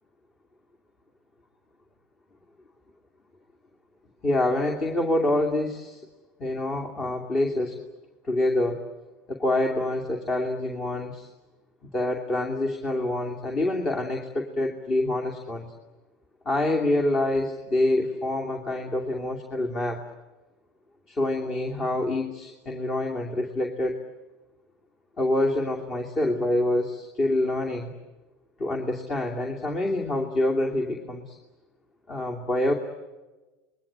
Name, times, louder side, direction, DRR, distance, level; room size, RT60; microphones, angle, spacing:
voice 1, 4.2-6.0 6.4-7.8 8.2-8.9 9.3-11.3 11.9-15.7 16.4-20.0 21.1-24.0 25.2-27.9 28.6-31.4 32.1-32.7, left 1 dB, 30° left, 2 dB, 2.7 m, -26 dB
28.0 x 22.0 x 8.9 m, 1.2 s
supercardioid pair, 140°, 0 cm